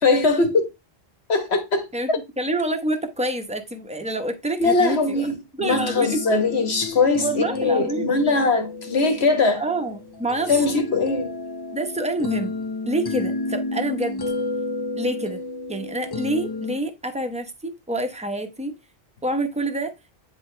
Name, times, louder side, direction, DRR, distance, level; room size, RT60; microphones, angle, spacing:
voice 1, 0.0-0.7 1.3-2.2 4.6-9.6 10.5-11.3, left 3 dB, 80° left, 1.7 m, -21 dB
voice 2, 2.4-6.4 7.2-8.1 9.6-10.7 11.7-12.5 12.9-14.2 15.0-15.4 15.7-18.7 19.2-19.9, right 1 dB, 5° right, 1.0 m, -27 dB
sound 1, 5.7-16.8, left 2 dB, 30° left, 0.5 m, -31 dB
9.6 x 4.3 x 3.3 m
omnidirectional pair, 1.1 m